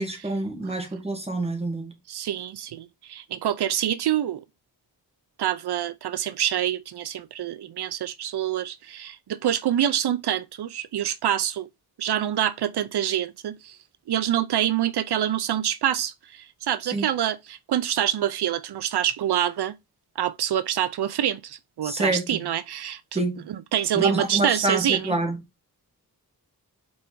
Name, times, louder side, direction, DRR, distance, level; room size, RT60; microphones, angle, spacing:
voice 1, 0.0-1.9 16.9-17.1 21.8-22.2 23.1-23.4 23.9-25.4, right 2 dB, 15° right, 1.7 m, -26 dB
voice 2, 2.1-4.4 5.4-11.7 12.0-13.8 14.1-19.8 20.2-25.2, right 10 dB, 85° right, 0.6 m, -26 dB
5.5 x 4.5 x 4.6 m
wide cardioid pair, 120°, 38 cm